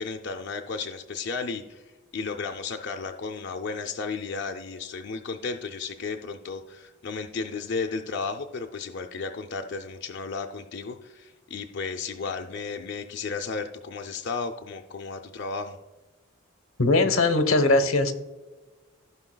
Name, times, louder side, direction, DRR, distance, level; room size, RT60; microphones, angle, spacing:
voice 1, 0.0-15.8, left 4 dB, 55° left, 5 dB, 0.5 m, -34 dB
voice 2, 16.8-18.1, left 2 dB, 90° left, 8 dB, 0.9 m, -20 dB
15.5 x 5.6 x 2.2 m, 1.2 s
head